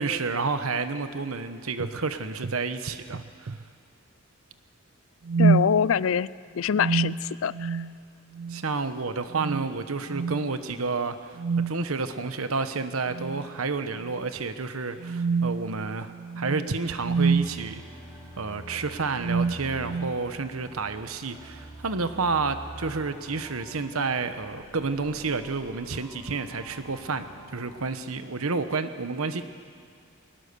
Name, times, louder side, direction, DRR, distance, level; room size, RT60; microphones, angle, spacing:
voice 1, 0.0-3.5 8.5-17.8 18.4-29.5, right 4 dB, 90° right, 10 dB, 1.1 m, -30 dB
sound 1, 1.8-2.0 2.4-2.6 3.1-3.6 5.2-5.8 6.7-8.0 8.3-8.6 9.3-9.7 10.1-10.4 11.4-11.9 13.1-13.5 14.0-14.1 15.0-17.6 18.5-18.7 19.2-20.2, right 4 dB, 55° right, 0.5 m, -27 dB
voice 2, 5.4-6.3 6.5-7.8, left 7 dB, 65° left, 20 dB, 0.4 m, -24 dB
sound 2, 16.7-27.7, equal, 15° right, 5.6 m, -46 dB
22.0 x 19.5 x 6.9 m, 2.2 s
head